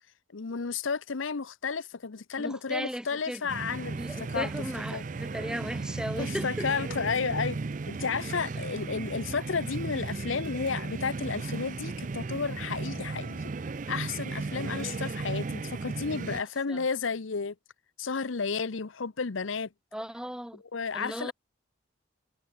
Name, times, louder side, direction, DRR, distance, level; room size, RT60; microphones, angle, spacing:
voice 1, 0.3-4.0 4.3-4.5 4.9-5.0 6.2-7.6 7.9-13.5 13.9-17.5 18.0-19.7 20.7-21.3, left 5 dB, 75° left, 0.8 m, -32 dB
voice 2, 2.4-3.4 4.0-6.7 16.3-16.8 19.9-20.6 20.9-21.3, equal, 5° right, 1.5 m, -37 dB
sound 1, 3.5-16.4, right 3 dB, 40° right, 0.4 m, -35 dB
head